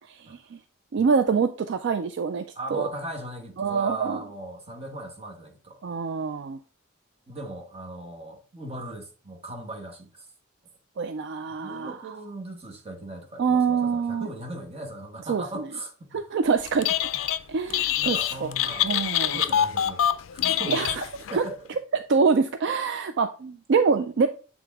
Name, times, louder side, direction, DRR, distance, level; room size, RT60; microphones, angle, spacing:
voice 1, 0.1-0.6 0.9-2.4 2.7-2.9 3.6-4.2 5.8-6.6 11.0-12.0 13.4-14.3 15.3-15.6 16.1-16.9 17.5-18.5 18.8-19.4 20.7-21.0 21.3-21.4 21.9-24.3, right 5 dB, 55° right, 0.4 m, -25 dB
voice 2, 2.5-5.8 7.3-10.3 11.6-16.2 18.0-20.0 20.3-20.9 21.3-21.6, right 1 dB, 30° right, 1.2 m, -38 dB
Telephone, 16.7-17.4 17.7-21.4, left 10 dB, 65° left, 0.4 m, -25 dB
7.7 x 3.5 x 3.5 m
head